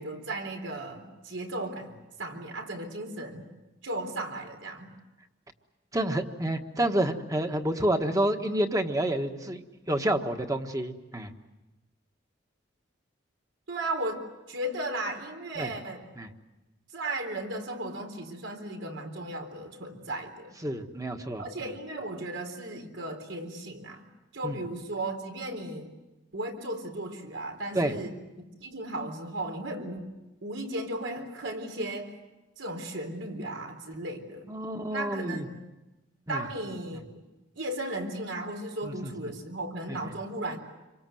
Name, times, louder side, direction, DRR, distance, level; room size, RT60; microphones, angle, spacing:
voice 1, 0.0-3.4 3.8-4.9 13.7-14.2 14.5-16.0 16.9-20.5 21.4-24.0 24.3-25.9 26.3-28.1 28.6-30.1 30.4-32.1 32.6-34.5 34.9-35.5 36.3-37.0 37.6-40.6, right 1 dB, 80° right, 4 dB, 4.0 m, -35 dB
voice 2, 5.9-11.3 15.6-15.7 16.1-16.3 20.6-21.7 24.4-24.6 27.7-27.9 34.5-35.5 36.3-36.5 38.8-39.3 39.9-40.0, right 1 dB, 20° right, 6 dB, 1.4 m, -29 dB
27.5 x 24.5 x 7.8 m, 1.1 s
head